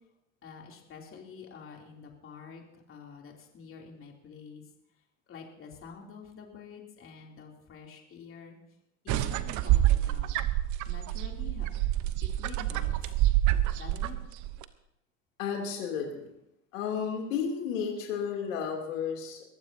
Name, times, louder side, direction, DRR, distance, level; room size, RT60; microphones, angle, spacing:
voice 1, 0.4-4.6 5.3-8.6 9.0-10.5 10.8-11.7 12.2-13.1 13.7-14.2, left 6 dB, 35° left, 0 dB, 3.2 m, -47 dB
sound 1, 9.1-14.6, right 14 dB, 50° right, 1.0 m, -27 dB
voice 2, 15.4-16.3 16.7-19.5, left 7 dB, 80° left, 0 dB, 3.2 m, -32 dB
22.0 x 15.0 x 2.8 m, 0.85 s
hypercardioid pair, 85°, 38 cm